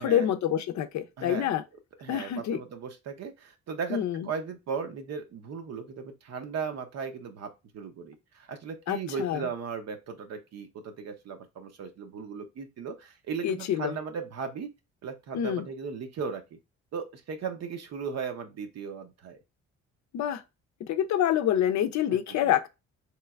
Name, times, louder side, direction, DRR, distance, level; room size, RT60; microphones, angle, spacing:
voice 1, 0.0-1.6 2.1-2.6 3.9-4.3 8.9-9.5 13.4-13.9 15.3-15.6 20.1-20.4 20.9-22.7, left 10 dB, 65° left, 0.5 m, -27 dB
voice 2, 1.2-1.5 2.0-14.7 15.0-16.6 16.9-19.4 22.3-22.5, right 6 dB, 60° right, 0.6 m, -37 dB
3.3 x 3.0 x 2.3 m
cardioid pair, 90°, 30 cm